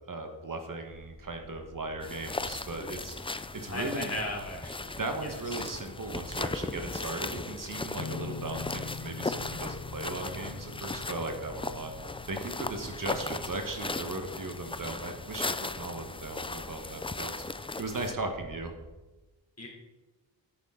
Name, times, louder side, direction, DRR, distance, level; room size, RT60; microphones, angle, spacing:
voice 1, 0.1-4.1 5.0-11.9 12.3-17.3 17.8-18.7, right 2 dB, 50° right, 4 dB, 1.3 m, -37 dB
sound 1, 0.9-18.9, equal, 80° right, 3.2 m, -53 dB
sound 2, 2.0-18.1, left 3 dB, 15° left, 0.4 m, -37 dB
voice 2, 3.7-5.6 19.6-19.7, left 1 dB, 35° left, -1 dB, 3.3 m, -37 dB
sound 3, 8.0-15.5, left 6 dB, 60° left, 0.8 m, -45 dB
10.0 x 9.1 x 3.8 m, 1.1 s
wide cardioid pair, 80°, 42 cm